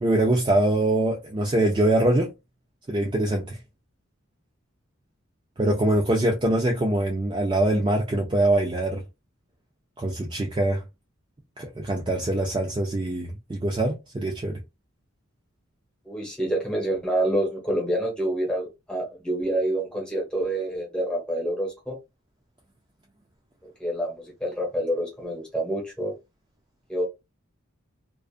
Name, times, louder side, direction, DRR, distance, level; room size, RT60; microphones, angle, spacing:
voice 1, 0.0-2.3 2.9-3.6 5.6-9.0 10.0-10.8 11.6-14.6, right 1 dB, 25° right, 0.4 m, -23 dB
voice 2, 16.0-22.0 23.8-26.1 26.9-27.0, right 1 dB, 5° left, 1.0 m, -27 dB
2.4 x 2.4 x 2.4 m
head